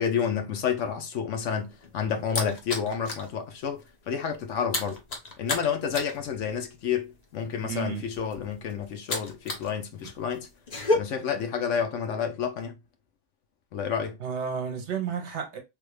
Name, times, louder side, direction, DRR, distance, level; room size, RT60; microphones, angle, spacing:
voice 1, 0.0-5.0 5.4-10.5 10.9-12.7 13.7-14.2, left 7 dB, 70° left, 1.0 m, -30 dB
sound 1, 1.5-3.3 3.6-3.9 4.1-9.7 10.0-10.9, left 2 dB, 40° left, 0.7 m, -32 dB
voice 2, 7.7-8.1 14.2-15.6, right 6 dB, 60° right, 1.0 m, -32 dB
3.4 x 2.4 x 3.1 m
omnidirectional pair, 1.4 m